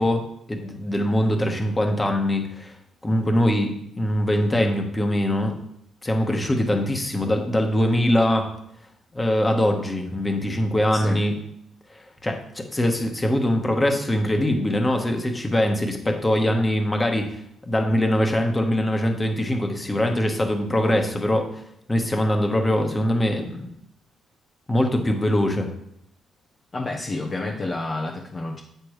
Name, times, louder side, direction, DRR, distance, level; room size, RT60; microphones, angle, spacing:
voice 1, 0.0-2.7 3.0-5.6 6.0-8.5 9.1-11.3 11.9-21.6 21.9-23.7 24.7-25.7, left 1 dB, 15° left, 3 dB, 1.4 m, -22 dB
voice 2, 26.7-28.6, left 2 dB, 35° left, -1 dB, 0.9 m, -29 dB
8.3 x 6.8 x 3.3 m, 0.74 s
cardioid pair, 90°, 0 cm